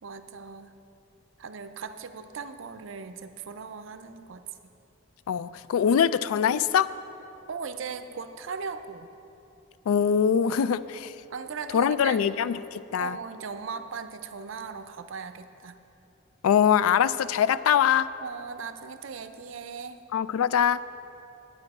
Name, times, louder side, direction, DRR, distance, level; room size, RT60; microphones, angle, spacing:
voice 1, 0.0-0.7 1.4-4.5 7.5-9.1 10.6-10.9 11.3-12.2 13.0-15.8 18.2-20.0, right 5 dB, 65° right, 10 dB, 0.5 m, -38 dB
voice 2, 5.3-6.9 9.9-10.8 11.7-13.2 16.4-18.1 20.1-20.8, left 8 dB, 80° left, 16 dB, 0.3 m, -23 dB
10.0 x 8.7 x 4.8 m, 2.9 s
head